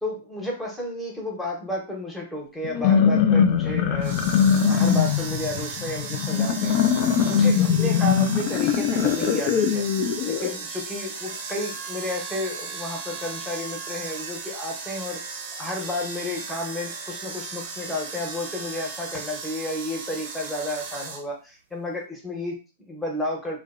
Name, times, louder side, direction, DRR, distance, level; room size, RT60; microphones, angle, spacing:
voice 1, 0.0-6.7 7.2-9.9 10.2-15.2 15.6-23.6, left 1 dB, 5° left, 0 dB, 0.8 m, -32 dB
sound 1, 2.6-10.5, left 7 dB, 50° left, 0.4 m, -21 dB
sound 2, 4.0-21.2, right 4 dB, 55° right, 0.5 m, -36 dB
2.5 x 2.1 x 2.3 m, 0.33 s
hypercardioid pair, 115°, 0 cm